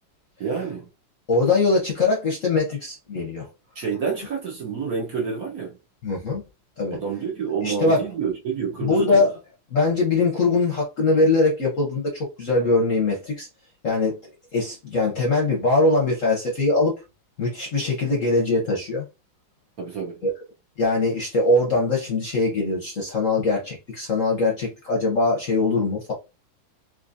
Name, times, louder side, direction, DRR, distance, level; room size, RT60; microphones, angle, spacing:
voice 1, 0.4-0.9 3.7-5.8 6.9-9.3 19.8-20.2, right 6 dB, 55° right, 1.1 m, -28 dB
voice 2, 1.3-3.5 6.0-6.4 6.8-7.0 7.6-8.0 8.8-9.3 9.7-13.5 13.8-14.2 14.5-16.9 17.4-19.1 20.2-20.3 20.8-26.1, left 3 dB, 55° left, 0.9 m, -22 dB
3.9 x 3.0 x 2.5 m
omnidirectional pair, 2.3 m